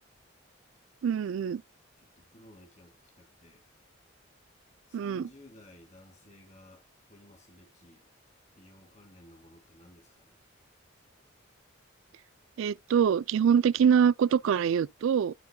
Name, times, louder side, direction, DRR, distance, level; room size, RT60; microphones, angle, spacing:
voice 1, 1.0-1.6 4.9-5.3 12.6-15.3, right 7 dB, 80° right, 0.3 m, -24 dB
voice 2, 2.0-3.6 4.9-8.1 8.6-10.4, left 1 dB, 35° left, 2.0 m, -56 dB
13.0 x 4.5 x 2.2 m
head